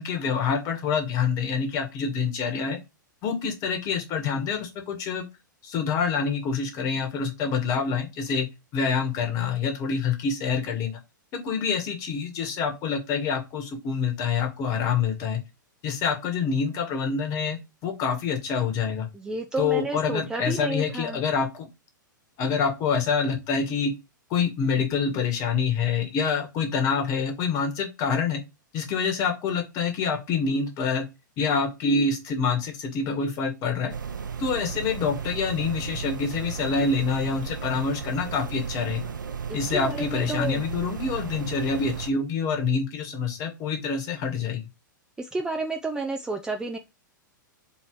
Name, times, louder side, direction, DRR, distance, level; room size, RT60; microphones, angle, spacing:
voice 1, 0.0-2.8 3.2-5.3 5.6-8.5 8.7-11.0 11.3-15.4 15.8-19.1 19.6-21.7 22.4-23.9 24.3-28.4 28.7-31.0 31.4-33.9 34.4-39.1 39.5-44.6, left 5 dB, 30° left, 4 dB, 1.2 m, -26 dB
voice 2, 19.1-21.2 39.5-40.6 45.2-46.8, right 3 dB, 5° right, 3 dB, 0.4 m, -31 dB
sound 1, 33.9-42.1, right 6 dB, 70° right, 0.6 m, -34 dB
3.7 x 3.1 x 4.6 m, 0.24 s
figure-of-eight pair, 105°, 11 cm